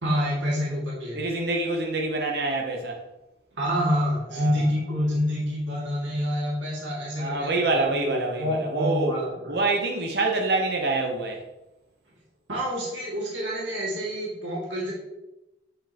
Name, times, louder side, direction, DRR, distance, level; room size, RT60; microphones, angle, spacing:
voice 1, 0.0-1.2 3.5-9.6 12.5-14.9, equal, 85° right, -5 dB, 2.1 m, -27 dB
voice 2, 1.1-3.0 4.3-4.7 7.2-9.1 9.5-11.4, right 2 dB, 60° right, 2 dB, 0.8 m, -26 dB
7.7 x 5.5 x 2.9 m, 0.96 s
head